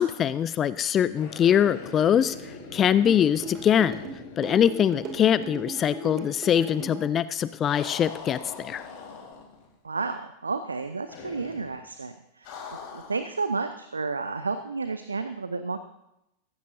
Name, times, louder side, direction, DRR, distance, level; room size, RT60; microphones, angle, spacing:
voice 1, 0.0-4.0 4.4-8.9, left 9 dB, 25° left, 16 dB, 0.4 m, -23 dB
sound 1, 1.1-5.3 5.5-5.6 7.6-9.7 11.1-11.8 12.4-13.3, left 4 dB, 45° left, 2.9 m, -42 dB
sound 2, 3.0-7.0, right 2 dB, 30° right, 2.5 m, -36 dB
voice 2, 9.8-12.6 12.9-15.8, right 4 dB, 75° right, 10 dB, 0.6 m, -31 dB
15.5 x 14.5 x 2.7 m, 0.85 s
figure-of-eight pair, 90°, 0 cm